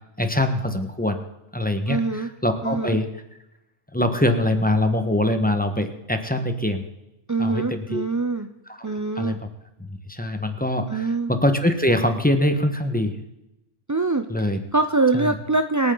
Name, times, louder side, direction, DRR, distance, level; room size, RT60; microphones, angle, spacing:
voice 1, 0.2-1.2 1.5-3.1 3.9-6.9 7.4-8.0 8.8-9.4 9.8-13.1 14.3-14.6 15.1-15.3, left 1 dB, 5° left, 6 dB, 1.3 m, -23 dB
voice 2, 1.9-2.3 2.6-3.0 7.3-8.5 8.8-9.4 10.9-11.3 13.9-14.3 14.7-15.9, right 3 dB, 25° right, 8 dB, 0.4 m, -23 dB
26.0 x 9.4 x 3.9 m, 0.91 s
omnidirectional pair, 1.3 m